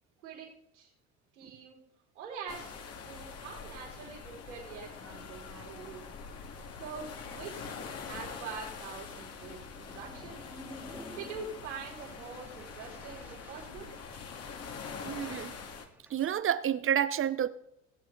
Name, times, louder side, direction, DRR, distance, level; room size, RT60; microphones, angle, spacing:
voice 1, 1.3-1.8 2.1-2.8 3.0-6.1 6.5-10.4 11.1-13.9, right 5 dB, 90° right, 4.6 m, -44 dB
sound 1, 2.5-15.9, left 5 dB, 45° left, 2.3 m, -44 dB
sound 2, 5.1-16.4, right 1 dB, 5° right, 2.2 m, -55 dB
voice 2, 15.0-15.5 16.1-17.5, right 10 dB, 40° right, 0.9 m, -29 dB
20.0 x 8.1 x 4.0 m
hypercardioid pair, 75°, 34 cm